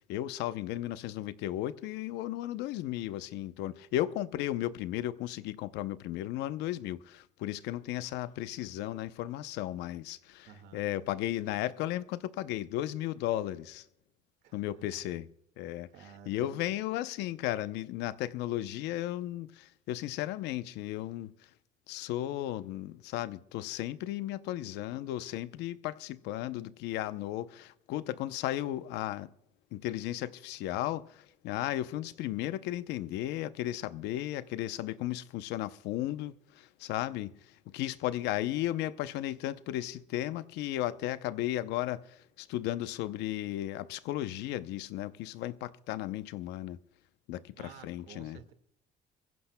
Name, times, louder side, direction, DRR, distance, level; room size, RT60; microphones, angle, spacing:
voice 1, 0.1-10.5 10.7-13.8 14.5-15.3 15.6-15.9 16.3-21.3 21.9-29.3 29.7-37.3 37.7-46.8 47.3-48.4, left 14 dB, 90° left, 0.7 m, -35 dB
voice 2, 10.5-10.8 14.4-15.2 15.9-16.7 47.6-48.5, right 8 dB, 85° right, 1.8 m, -52 dB
24.5 x 15.5 x 2.2 m
cardioid pair, 110°, 17 cm